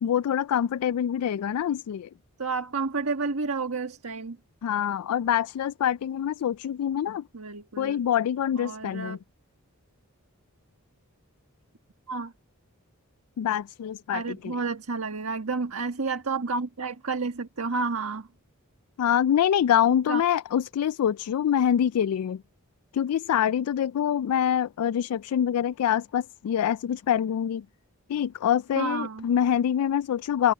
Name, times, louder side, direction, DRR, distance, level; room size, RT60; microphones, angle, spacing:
voice 1, 0.0-2.1 4.6-7.2 7.8-9.2 13.4-14.5 19.0-22.4 22.9-27.6 28.1-30.5, left 9 dB, 85° left, 0.3 m, -25 dB
voice 2, 2.4-4.4 7.3-8.0 8.6-9.2 12.1-12.3 14.1-18.3 20.1-20.2 28.8-29.2, right 4 dB, 75° right, 1.4 m, -30 dB
head